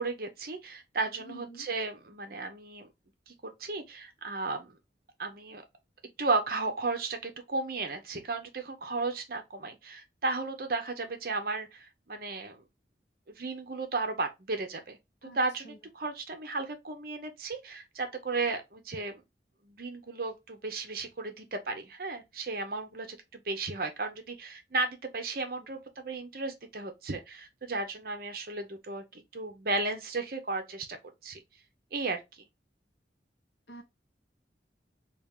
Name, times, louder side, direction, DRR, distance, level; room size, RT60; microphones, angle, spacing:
voice 1, 0.0-2.9 3.3-4.8 5.2-5.6 6.2-12.6 13.3-19.2 19.6-31.0 31.2-31.4 31.9-32.4, right 3 dB, 50° right, 0.7 m, -34 dB
voice 2, 1.2-1.7 15.2-15.4 15.6-15.8 33.7-33.8, right 1 dB, 70° left, 0.8 m, -47 dB
4.3 x 2.4 x 3.5 m
head